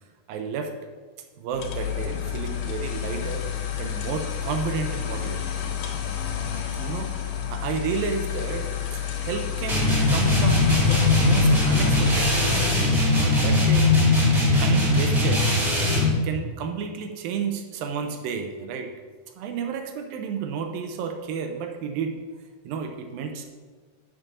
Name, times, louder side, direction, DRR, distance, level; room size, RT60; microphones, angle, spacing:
voice 1, 0.3-0.7 1.4-3.5 3.8-5.6 6.7-7.2 7.5-14.0 14.6-15.5 16.2-18.9 19.4-22.2 22.6-23.5, right 6 dB, 85° right, 5 dB, 2.5 m, -32 dB
sound 1, 1.5-13.1, left 9 dB, 75° left, 2.5 m, -30 dB
sound 2, 9.7-16.2, left 2 dB, 25° right, 2.6 m, -20 dB
7.6 x 6.7 x 6.0 m, 1.4 s
omnidirectional pair, 4.1 m